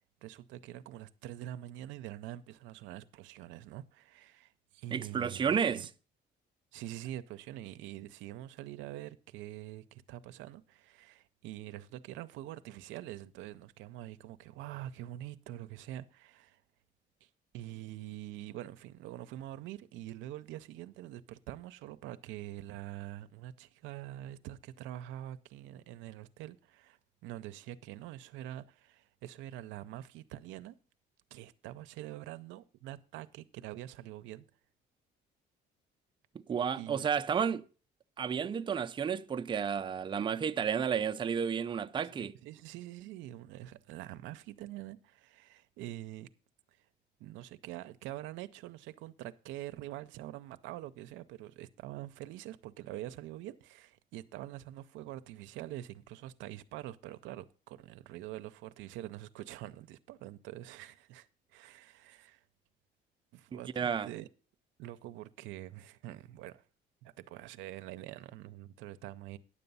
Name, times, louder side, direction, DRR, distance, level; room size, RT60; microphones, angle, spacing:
voice 1, 0.2-5.9 6.7-16.6 17.2-17.3 17.5-30.8 31.3-34.5 36.8-37.0 42.1-46.3 46.7-46.8 47.2-62.4 63.3-64.3 64.8-66.6 67.0-69.4, right 14 dB, 90° right, 0.6 m, -45 dB
voice 2, 4.9-5.9 36.5-37.6 38.2-42.3 63.5-64.1, right 7 dB, 25° right, 0.5 m, -32 dB
9.9 x 6.9 x 5.4 m
cardioid pair, 105°, 19 cm